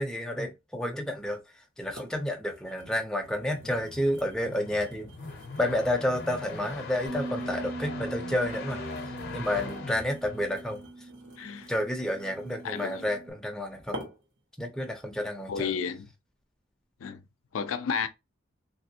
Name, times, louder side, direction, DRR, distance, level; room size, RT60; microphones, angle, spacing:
voice 1, 0.0-1.4 1.8-5.1 5.6-8.8 9.3-10.8 11.7-14.0 14.6-15.7, left 1 dB, 5° left, 0.5 m, -30 dB
sound 1, 1.2-1.3 2.0-2.2 2.5-7.7 8.3-13.2 13.9-14.4 14.9-15.1, equal, 75° right, 1.2 m, -49 dB
sound 2, 3.3-10.9, left 3 dB, 50° left, 0.7 m, -41 dB
Bass guitar, 7.1-13.3, right 2 dB, 55° right, 0.6 m, -41 dB
voice 2, 11.4-11.7 12.6-13.1 15.5-16.1 17.0-17.2 17.5-18.1, left 6 dB, 90° left, 0.4 m, -32 dB
3.3 x 2.7 x 2.8 m
head